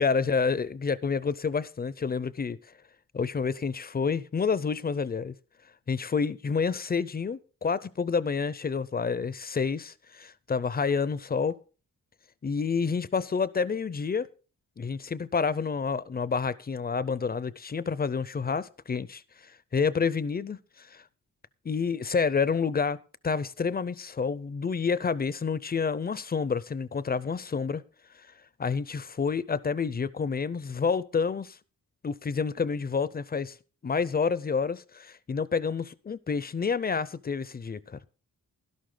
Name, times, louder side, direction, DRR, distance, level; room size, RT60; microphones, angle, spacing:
voice 1, 0.0-2.6 3.1-5.3 5.9-11.6 12.4-14.3 14.8-19.2 19.7-21.0 21.6-23.0 23.2-27.8 28.6-31.6 32.0-33.5 33.8-38.1, left 5 dB, 25° left, 0.5 m, -29 dB
12.0 x 11.5 x 3.8 m
wide cardioid pair, 135°, 35 cm